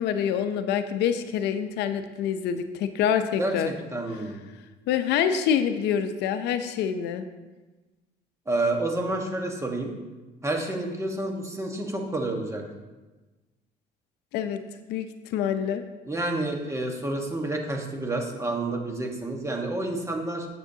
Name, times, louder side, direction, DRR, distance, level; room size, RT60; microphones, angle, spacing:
voice 1, 0.0-3.7 4.9-7.2 14.3-14.6 14.9-15.8, left 8 dB, 80° left, 9 dB, 0.6 m, -26 dB
voice 2, 3.4-4.4 8.5-9.9 10.4-12.6 16.1-20.5, right 2 dB, 15° right, 2 dB, 1.3 m, -29 dB
9.8 x 7.0 x 2.8 m, 1.2 s
cardioid pair, 110°, 17 cm